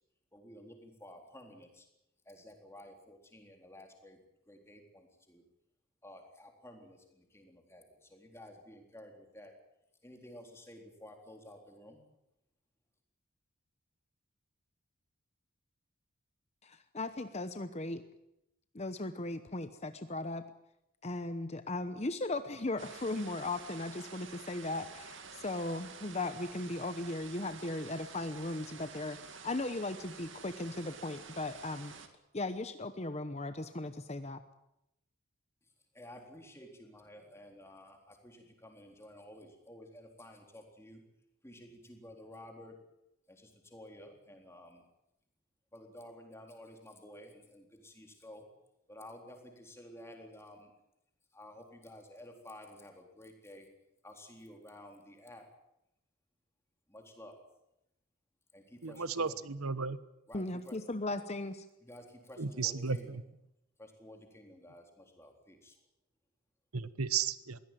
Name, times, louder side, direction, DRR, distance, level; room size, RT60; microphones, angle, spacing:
voice 1, 0.3-1.9 2.3-4.2 4.5-5.4 6.0-9.5 10.0-12.0 35.6-41.0 41.4-42.8 43.3-44.8 45.7-48.5 48.9-50.7 51.3-53.7 54.0-55.5 56.9-57.4 58.5-59.4 60.3-60.8 61.8-63.2 63.8-65.8, left 1 dB, 10° left, 3 dB, 3.8 m, -53 dB
voice 2, 16.6-18.0 18.7-20.4 21.0-31.9 32.3-34.4 60.3-61.6, left 2 dB, 30° left, 10 dB, 0.9 m, -37 dB
sound 1, 22.8-32.1, right 5 dB, 60° right, 2.3 m, -50 dB
voice 3, 58.8-60.0 62.4-63.0 66.7-67.6, right 5 dB, 90° right, 15 dB, 1.1 m, -34 dB
22.5 x 17.0 x 9.2 m, 0.85 s
head